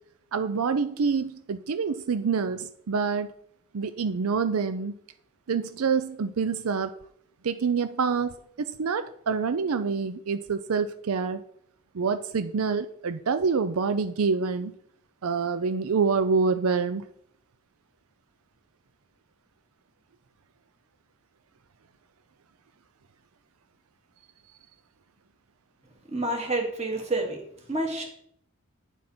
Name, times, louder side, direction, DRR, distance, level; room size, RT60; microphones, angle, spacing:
voice 1, 0.3-3.3 3.7-4.9 5.5-6.9 7.4-11.4 11.9-14.7 15.2-17.0, right 5 dB, 85° right, 11 dB, 0.5 m, -26 dB
voice 2, 26.1-27.4 27.7-28.0, right 2 dB, 30° right, 1 dB, 2.3 m, -28 dB
10.0 x 7.6 x 4.4 m, 0.68 s
head